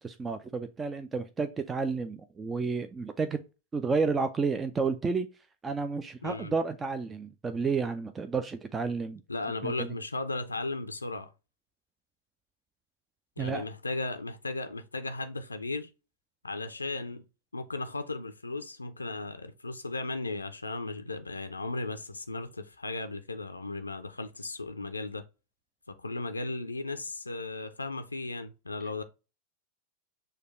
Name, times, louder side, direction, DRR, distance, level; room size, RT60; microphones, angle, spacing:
voice 1, 0.0-3.4 3.7-5.3 5.6-9.2 9.6-9.9 13.4-13.6, right 4 dB, 15° right, 0.3 m, -31 dB
voice 2, 6.2-6.5 9.3-11.3 13.4-15.9 16.4-17.2 17.5-25.2 26.0-29.0, left 2 dB, 80° left, 0.4 m, -36 dB
6.4 x 2.2 x 3.1 m
figure-of-eight pair, 90°, 0 cm